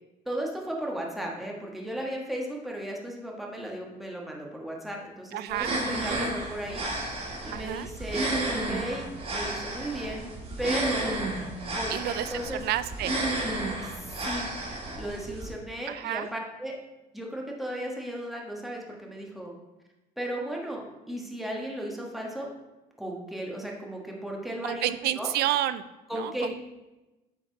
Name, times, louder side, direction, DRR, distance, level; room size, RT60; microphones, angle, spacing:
voice 1, 0.3-10.3 10.6-11.1 11.8-12.6 13.8-14.5 15.0-16.8 17.1-19.5 20.2-22.5 23.0-24.9 25.1-25.3 26.1-26.6, right 1 dB, ahead, -1 dB, 1.4 m, -35 dB
voice 2, 5.3-6.3 7.5-7.9 11.9-13.1 15.9-16.3 24.6-25.8 26.1-26.6, right 13 dB, 70° right, 14 dB, 0.4 m, -30 dB
sound 1, 5.5-15.5, right 1 dB, 35° right, 2.1 m, -32 dB
8.1 x 4.6 x 4.0 m, 1.1 s
cardioid pair, 110°, 17 cm